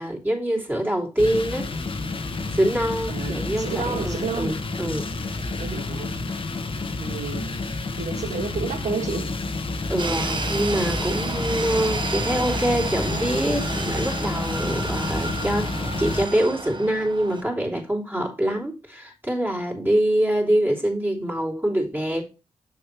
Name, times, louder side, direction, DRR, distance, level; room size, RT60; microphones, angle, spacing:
voice 1, 0.0-1.7 2.5-5.1 7.8-8.0 9.9-15.7 16.0-22.2, right 1 dB, 15° right, 3.1 m, -25 dB
sound 1, 1.2-16.3, left 3 dB, 45° left, 1.2 m, -29 dB
voice 2, 3.1-4.6 5.4-6.2 7.0-7.6 8.0-9.3, right 5 dB, 70° right, 1.9 m, -31 dB
sound 2, 10.0-17.4, right 3 dB, 40° right, 1.1 m, -31 dB
7.5 x 6.6 x 3.1 m
cardioid pair, 85°, 12 cm